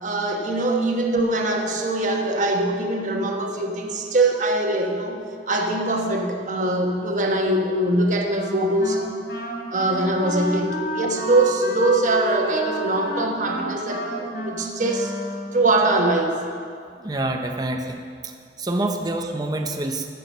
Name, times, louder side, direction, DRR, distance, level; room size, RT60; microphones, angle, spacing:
voice 1, 0.0-5.2 5.5-9.0 9.7-15.1 15.5-16.3, right 2 dB, 45° right, 2 dB, 1.2 m, -22 dB
Wind instrument woodwind instrument, 8.3-15.8, equal, 70° left, 3.2 m, -31 dB
voice 2, 17.0-18.0 18.6-20.1, right 1 dB, 20° right, 4 dB, 0.7 m, -26 dB
13.5 x 6.9 x 6.6 m, 2.3 s
head